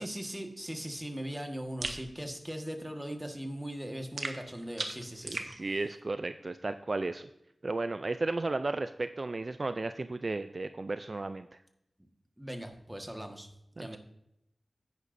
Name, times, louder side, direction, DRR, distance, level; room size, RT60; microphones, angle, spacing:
voice 1, 0.0-5.7 12.4-13.5 13.7-14.0, equal, 10° right, 4 dB, 1.5 m, -39 dB
sound 1, 1.8-2.0 4.2-5.5, right 3 dB, 70° right, 1.1 m, -37 dB
voice 2, 5.2-7.3 7.6-11.6 13.8-14.0, right 2 dB, 50° right, 10 dB, 0.4 m, -34 dB
10.5 x 9.7 x 2.6 m, 0.80 s
wide cardioid pair, 65°, 0 cm